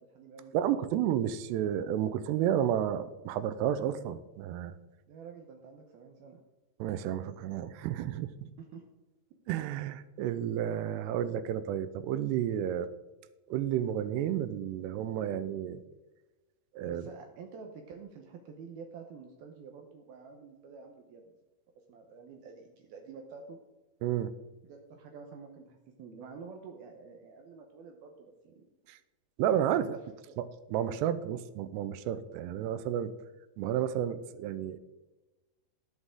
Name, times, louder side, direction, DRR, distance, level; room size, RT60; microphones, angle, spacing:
voice 1, 0.0-0.5 5.1-6.4 8.6-8.8 16.9-21.3 21.9-23.6 24.7-28.7 29.7-29.8 30.3-30.4, right 5 dB, 70° right, 3 dB, 2.6 m, -49 dB
voice 2, 0.5-4.8 6.8-8.5 9.5-12.9 13.5-15.8 16.7-17.1 24.0-24.3 28.9-29.0 29.4-30.0 30.4-33.1 33.6-34.8, right 10 dB, 90° right, 13 dB, 2.8 m, -31 dB
18.0 x 6.3 x 3.7 m, 1.1 s
omnidirectional pair, 4.9 m